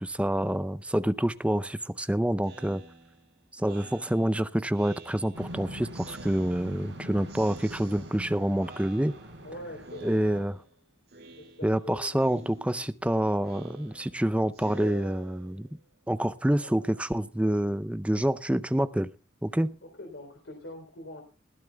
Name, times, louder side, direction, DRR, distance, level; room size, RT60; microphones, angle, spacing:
voice 1, 0.0-2.8 3.5-9.1 10.0-10.6 11.6-15.7 16.1-19.1 19.4-19.8, right 1 dB, 5° right, 0.5 m, -27 dB
Speech synthesizer, 2.4-5.6 5.9-7.0 7.3-8.3 8.6-9.5 9.8-10.7 11.1-11.9 12.2-15.7, right 2 dB, 60° right, 2.5 m, -49 dB
sound 1, 5.3-10.4, equal, 80° right, 7.3 m, -43 dB
voice 2, 9.4-10.6 11.4-12.4 12.8-13.3 16.6-16.9 17.4-17.7 19.8-21.2, left 1 dB, 75° left, 3.5 m, -45 dB
20.5 x 14.5 x 2.3 m
head